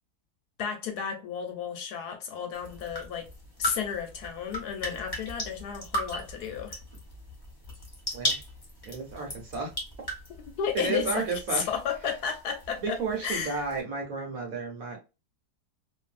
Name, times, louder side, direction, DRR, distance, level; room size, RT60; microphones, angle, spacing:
voice 1, 0.6-3.3 3.6-6.8 10.6-11.3 11.5-13.6, left 7 dB, 70° left, 1.2 m, -33 dB
sound 1, 2.5-13.8, equal, 20° left, 0.8 m, -38 dB
voice 2, 8.9-9.7 10.7-11.7 12.8-15.0, right 4 dB, 60° right, 1.2 m, -32 dB
2.6 x 2.6 x 2.4 m
omnidirectional pair, 1.8 m